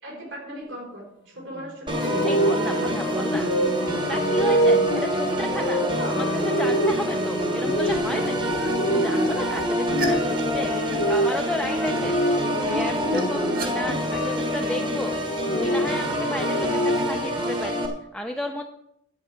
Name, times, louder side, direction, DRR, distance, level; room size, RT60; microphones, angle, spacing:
voice 1, 0.0-2.4 2.7-3.4 5.9-6.3, equal, 70° right, -1 dB, 4.5 m, -36 dB
Organ, 1.9-17.9, equal, 25° right, 1.2 m, -27 dB
sound 1, 2.0-13.9 15.1-17.3, right 1 dB, 65° left, 1.2 m, -27 dB
voice 2, 2.2-3.5 4.1-5.8 6.1-6.2 6.4-8.6 8.9-12.2 12.6-15.2 15.5-18.6, equal, 5° left, 2 dB, 0.5 m, -33 dB
sound 2, 7.4-8.1 8.5-14.4, equal, 45° right, 1.8 m, -31 dB
11.0 x 8.3 x 5.0 m, 0.76 s
head